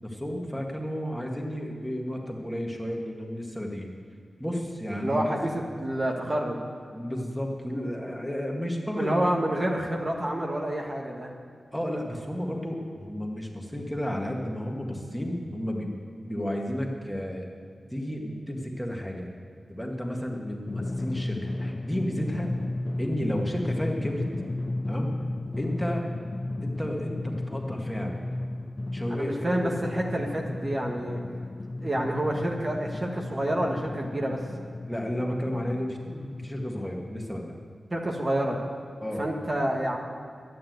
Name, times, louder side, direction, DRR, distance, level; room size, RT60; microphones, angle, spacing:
voice 1, 0.0-3.9 4.4-5.6 6.9-9.1 11.7-15.9 16.2-17.5 17.9-19.3 19.7-22.5 23.0-24.3 24.9-25.1 25.6-26.0 26.6-28.2 28.9-29.3 29.6-29.8 34.9-37.5 39.0-39.2, equal, 5° left, 0 dB, 1.9 m, -32 dB
voice 2, 5.0-6.6 8.9-11.3 29.1-31.2 31.8-34.5 37.9-38.6 39.2-40.0, right 1 dB, 35° right, 0 dB, 1.5 m, -28 dB
Drum, 20.7-36.8, left 2 dB, 35° left, 0.3 m, -34 dB
11.5 x 9.5 x 7.9 m, 2.2 s
wide cardioid pair, 75°, 0 cm